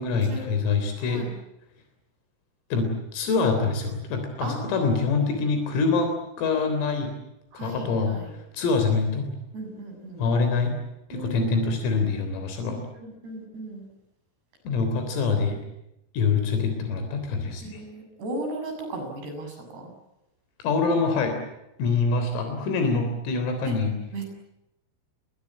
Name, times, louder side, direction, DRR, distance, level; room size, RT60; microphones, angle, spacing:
voice 1, 0.0-1.3 2.7-7.1 7.5-9.3 10.2-10.8 11.1-12.8 14.7-15.6 16.1-17.8 20.6-21.4 21.8-23.9, left 4 dB, 85° left, 6 dB, 6.3 m, -25 dB
voice 2, 1.0-1.3 4.4-4.9 7.5-8.3 9.5-10.3 11.1-11.5 12.6-13.9 17.6-19.9 23.6-23.7 24.1-24.3, right 2 dB, 55° right, 5 dB, 9.2 m, -36 dB
29.5 x 22.5 x 8.8 m, 0.90 s
omnidirectional pair, 5.9 m